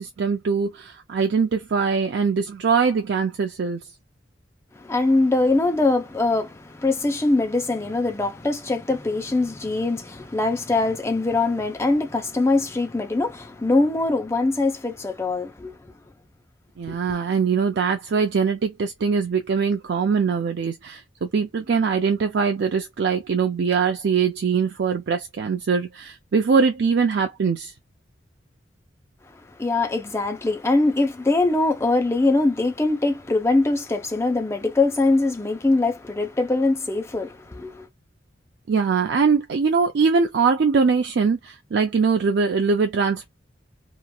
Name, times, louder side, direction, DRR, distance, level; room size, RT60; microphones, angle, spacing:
voice 1, 0.0-3.8 16.8-27.7 38.7-43.3, right 5 dB, 65° right, 0.4 m, -22 dB
voice 2, 4.8-15.8 16.9-17.0 29.6-37.9, left 2 dB, 15° left, 0.5 m, -22 dB
2.9 x 2.4 x 2.2 m
head